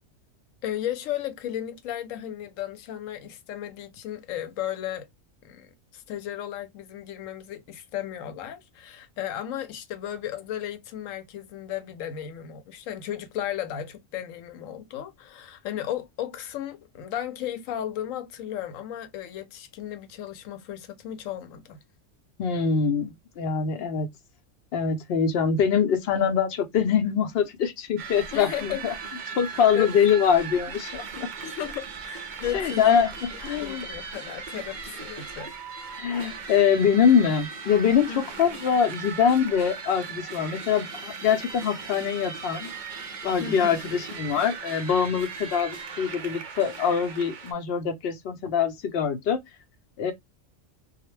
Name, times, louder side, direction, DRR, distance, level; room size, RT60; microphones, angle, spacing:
voice 1, 0.6-5.1 5.4-21.8 23.8-23.9 28.3-28.9 29.7-29.9 31.4-33.0 33.6-35.9 38.1-38.2 43.4-43.8, left 11 dB, 90° left, 1.0 m, -35 dB
voice 2, 22.4-24.1 24.7-28.9 29.4-31.3 32.5-33.9 36.0-42.7 43.2-49.4 50.0-50.1, left 7 dB, 60° left, 0.8 m, -24 dB
sound 1, 28.0-47.5, right 5 dB, 50° right, 0.6 m, -38 dB
2.3 x 2.0 x 3.0 m
omnidirectional pair, 1.3 m